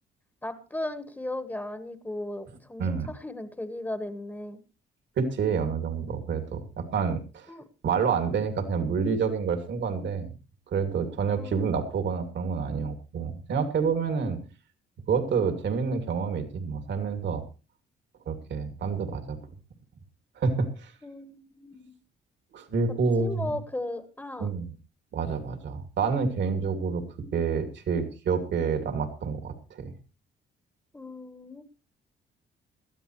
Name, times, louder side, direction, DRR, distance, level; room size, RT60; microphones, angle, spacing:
voice 1, 0.4-4.6 7.5-7.7 11.4-11.8 21.0-21.9 23.2-24.5 30.9-31.6, left 1 dB, 10° left, 10 dB, 1.3 m, -36 dB
voice 2, 5.2-7.5 7.8-10.3 10.7-14.4 15.1-17.4 18.3-19.4 20.4-20.9 22.5-23.5 24.4-24.7 25.1-27.0 27.3-29.9, right 5 dB, 65° right, 8 dB, 2.6 m, -28 dB
19.5 x 13.0 x 3.2 m, 0.32 s
cardioid pair, 90°, 20 cm